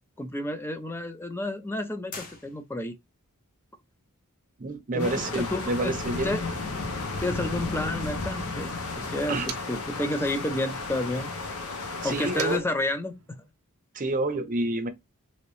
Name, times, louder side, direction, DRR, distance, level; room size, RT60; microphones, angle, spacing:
voice 1, 0.2-2.9 4.9-6.0 6.2-6.4 7.2-11.3 12.0-13.1, left 1 dB, 10° left, 0.5 m, -30 dB
sound 1, 2.1-3.1, left 4 dB, 40° left, 0.9 m, -43 dB
voice 2, 4.6-6.3 9.3-9.5 12.0-12.6 13.9-14.9, right 2 dB, 35° right, 0.6 m, -28 dB
sound 2, 5.0-12.6, left 3 dB, 70° left, 0.8 m, -33 dB
Motor vehicle (road), 5.5-10.0 10.3-13.5, right 9 dB, 80° right, 0.6 m, -47 dB
3.0 x 2.9 x 3.1 m
head